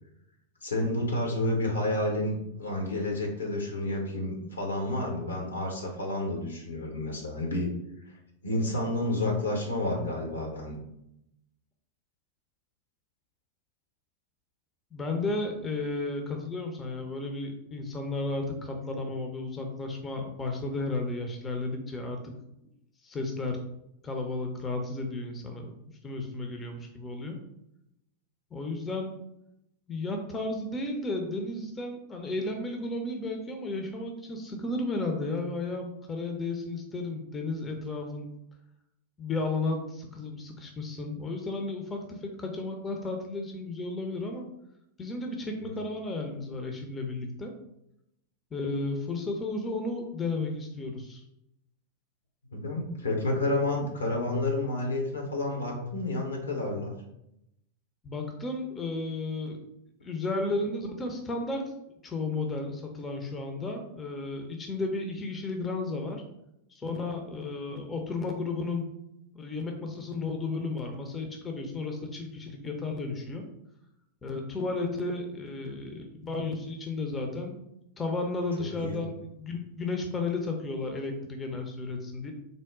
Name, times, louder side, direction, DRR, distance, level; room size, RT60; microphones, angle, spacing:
voice 1, 0.6-7.7 8.4-10.7 45.6-45.7 52.5-56.9 78.8-79.0, left 2 dB, 75° left, 1 dB, 0.9 m, -30 dB
voice 2, 14.9-22.3 23.0-23.6 24.0-25.7 26.0-27.4 28.5-29.1 29.9-38.3 39.2-44.5 45.0-47.5 48.5-51.2 58.0-59.6 60.0-61.6 62.0-66.2 66.7-68.9 69.3-73.4 74.2-77.6 78.0-82.3, left 2 dB, 20° left, 3 dB, 0.6 m, -33 dB
3.9 x 2.1 x 3.6 m, 0.81 s
figure-of-eight pair, 90°, 0 cm